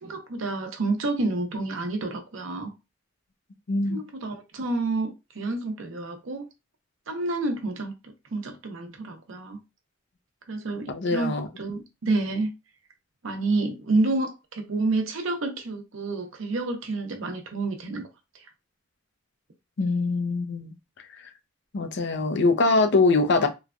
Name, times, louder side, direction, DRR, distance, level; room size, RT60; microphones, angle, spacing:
voice 1, 0.0-2.7 3.9-6.5 7.1-7.9 8.3-9.6 10.5-12.5 13.2-18.1 18.3-18.4, right 2 dB, 85° right, 0.7 m, -29 dB
voice 2, 3.7-4.0 10.9-11.5 19.8-20.7 21.7-23.5, left 3 dB, 60° left, 0.5 m, -23 dB
3.1 x 2.2 x 2.4 m
head